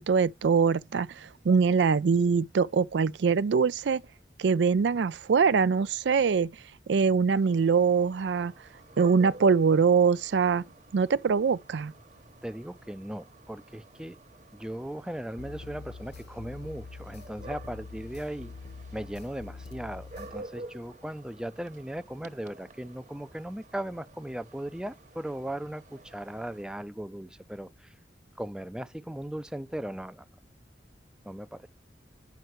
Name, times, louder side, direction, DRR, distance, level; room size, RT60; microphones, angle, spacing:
voice 1, 0.0-4.0 4.4-6.5 6.9-8.5 9.0-10.6 10.9-11.9, right 5 dB, 90° right, 0.4 m, -23 dB
sound 1, 7.3-26.6, right 2 dB, 45° right, 1.2 m, -51 dB
voice 2, 12.4-14.2 14.5-18.5 18.9-27.9 28.4-30.3 31.2-31.7, right 1 dB, 5° right, 0.4 m, -38 dB
sound 2, 15.4-20.4, left 4 dB, 70° left, 1.2 m, -45 dB
9.3 x 5.5 x 3.0 m
head